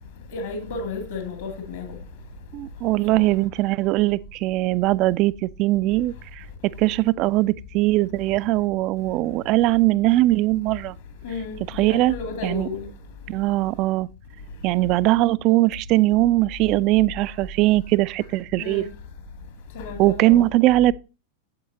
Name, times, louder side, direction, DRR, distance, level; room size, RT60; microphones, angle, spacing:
voice 1, 0.3-2.0 3.1-3.3 11.2-12.9 18.6-18.9 19.8-20.5, left 4 dB, 55° left, 2.1 m, -32 dB
voice 2, 2.5-6.4 6.8-11.0 11.8-12.2 12.4-12.7 13.3-14.1 14.6-18.8 20.0-20.9, right 17 dB, 40° right, 0.3 m, -20 dB
8.8 x 7.8 x 2.6 m
figure-of-eight pair, 90°, 0 cm